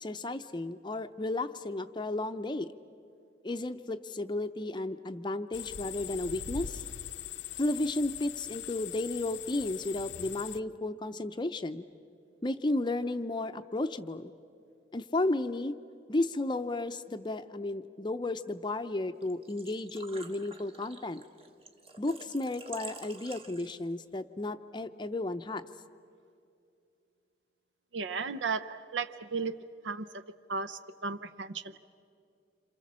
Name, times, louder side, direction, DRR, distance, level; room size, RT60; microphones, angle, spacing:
voice 1, 0.0-2.7 3.4-6.8 7.6-11.8 12.4-14.3 14.9-15.8 16.1-21.2 22.0-25.7, left 2 dB, 25° left, 9 dB, 0.5 m, -33 dB
sound 1, 5.5-10.6, left 9 dB, 80° left, 0.6 m, -41 dB
Engine / Trickle dribble / Fill (with liquid), 19.2-24.1, right 3 dB, 30° right, 1.4 m, -49 dB
voice 2, 27.9-29.6 29.8-30.1 30.5-31.8, right 4 dB, 85° right, 12 dB, 0.7 m, -35 dB
27.5 x 27.0 x 7.4 m, 2.5 s
head